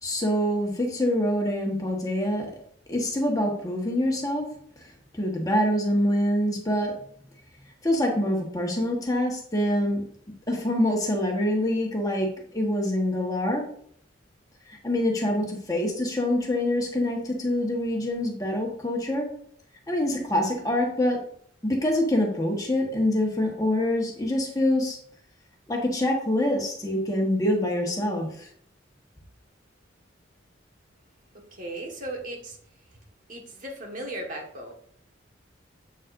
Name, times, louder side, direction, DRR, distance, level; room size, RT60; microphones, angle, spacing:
voice 1, 0.0-2.5 2.9-4.5 4.8-6.9 7.8-10.0 10.5-13.6 14.7-19.3 19.9-21.2 21.6-25.0 25.7-28.5, left 1 dB, 20° left, 0 dB, 1.3 m, -25 dB
voice 2, 31.3-32.6 32.9-33.0 33.3-34.7, right 1 dB, 45° right, 0 dB, 1.6 m, -37 dB
8.0 x 7.5 x 2.6 m, 0.62 s
head